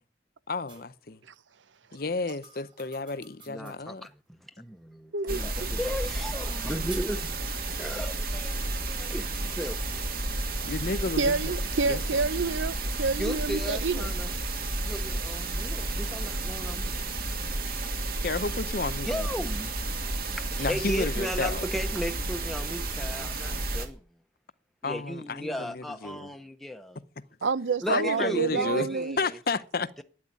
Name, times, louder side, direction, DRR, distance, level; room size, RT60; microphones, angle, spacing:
voice 1, 0.5-1.2 1.9-4.0 10.6-11.4 11.9-12.0 18.2-19.3 20.6-21.6 24.8-26.3 27.9-28.9 29.2-29.9, left 3 dB, 50° left, 0.7 m, -31 dB
sound 1, 0.7-0.9 2.0-4.1 5.8-7.3, right 6 dB, 25° right, 3.2 m, -49 dB
voice 2, 3.5-4.1 4.6-7.2 7.8-9.8 13.2-14.3 14.9-17.2 18.9-19.7 20.3-24.0 24.8-27.0 27.8-29.4, equal, ahead, 0.8 m, -36 dB
voice 3, 5.1-5.7 11.2-14.1 18.1-18.2 27.4-29.2, right 4 dB, 90° right, 0.7 m, -28 dB
sound 2, 5.3-23.9, right 2 dB, 50° right, 2.3 m, -32 dB
12.0 x 9.6 x 8.9 m
head